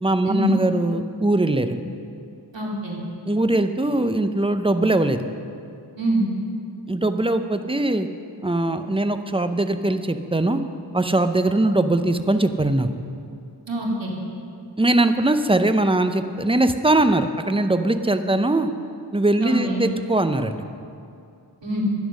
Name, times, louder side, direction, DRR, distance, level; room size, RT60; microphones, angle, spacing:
voice 1, 0.0-1.8 3.3-5.2 6.9-8.1 8.4-10.6 10.9-12.9 14.8-18.7 19.1-20.6, right 2 dB, 15° right, 9 dB, 0.6 m, -21 dB
voice 2, 2.5-3.0 6.0-6.3 13.7-14.1 19.4-19.8 21.6-21.8, equal, 85° right, -3 dB, 2.5 m, -24 dB
11.5 x 10.0 x 6.4 m, 2.5 s
wide cardioid pair, 45°, 43 cm